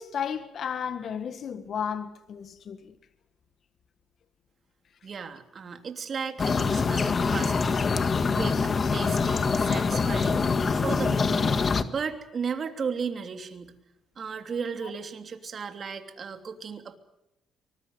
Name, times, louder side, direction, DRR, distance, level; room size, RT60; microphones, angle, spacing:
voice 1, 0.0-3.0 10.3-10.4 14.8-14.9, left 7 dB, 60° left, 1.6 m, -34 dB
voice 2, 5.0-7.8 8.3-10.4 10.8-13.7 14.2-17.0, right 6 dB, 50° right, 3.1 m, -35 dB
sound 1, 6.4-11.8, left 4 dB, 40° left, 1.7 m, -24 dB
24.0 x 20.5 x 8.0 m
cardioid pair, 90°, 0 cm